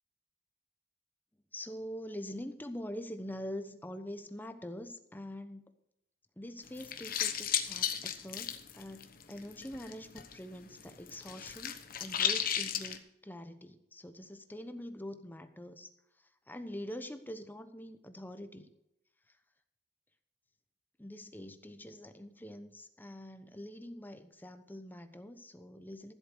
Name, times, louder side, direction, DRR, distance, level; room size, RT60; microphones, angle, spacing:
voice 1, 1.5-5.6 6.4-15.9 16.2-18.7 21.0-26.1, equal, 10° left, 9 dB, 1.0 m, -44 dB
sound 1, 6.7-10.4 10.6-13.0, left 9 dB, 55° left, 1.1 m, -34 dB
14.0 x 8.0 x 5.2 m, 0.83 s
head